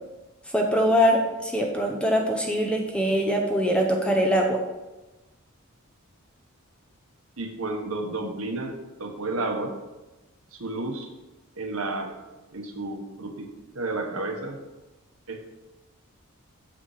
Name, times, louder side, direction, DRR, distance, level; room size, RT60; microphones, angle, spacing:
voice 1, 0.5-4.6, equal, 5° left, 1 dB, 0.8 m, -23 dB
voice 2, 7.4-9.7 10.5-11.1 11.6-12.1 12.5-13.5 13.7-14.6 15.3-15.5, right 2 dB, 70° right, 3 dB, 1.1 m, -31 dB
7.4 x 5.1 x 4.9 m, 1.1 s
head